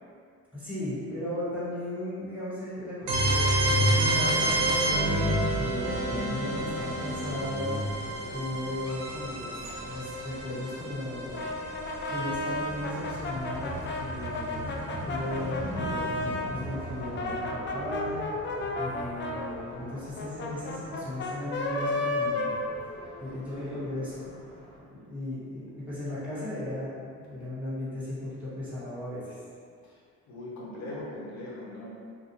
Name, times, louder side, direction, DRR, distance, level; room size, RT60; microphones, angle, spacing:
voice 1, 0.5-11.5 12.1-22.6 23.2-24.5 24.8-29.4, left 1 dB, 5° right, -13 dB, 1.2 m, -36 dB
sound 1, 3.1-12.8, right 1 dB, 75° right, 0.6 m, -28 dB
sound 2, 5.4-24.8, equal, 30° right, 1.3 m, -43 dB
Brass instrument, 11.3-16.5 17.0-23.3, left 2 dB, 40° left, 0.4 m, -33 dB
voice 2, 30.3-31.9, left 1 dB, 65° left, -5 dB, 0.8 m, -40 dB
2.5 x 2.4 x 2.8 m, 2.2 s
cardioid pair, 90°, 30 cm